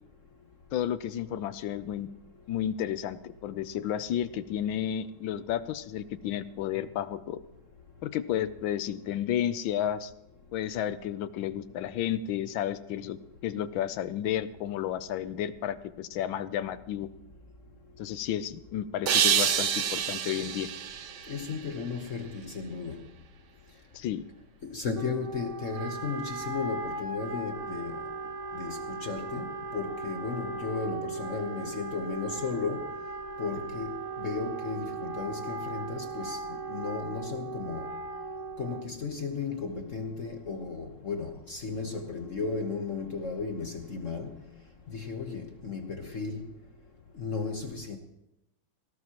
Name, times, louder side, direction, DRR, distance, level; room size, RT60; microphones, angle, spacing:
voice 1, 0.7-2.1 2.5-7.4 8.0-10.1 10.5-17.1 18.0-20.7 23.9-24.2, left 10 dB, 75° left, 13 dB, 1.4 m, -32 dB
sound 1, 19.1-22.2, right 8 dB, 60° right, 1.4 m, -28 dB
voice 2, 21.3-23.1 24.6-28.1 28.5-32.9 33.4-37.9 38.6-44.4 44.9-46.5 47.1-48.0, left 4 dB, 45° left, 4 dB, 1.2 m, -35 dB
Wind instrument woodwind instrument, 24.9-39.0, right 4 dB, 30° right, 0.6 m, -38 dB
18.5 x 17.0 x 3.0 m, 0.90 s
omnidirectional pair, 2.3 m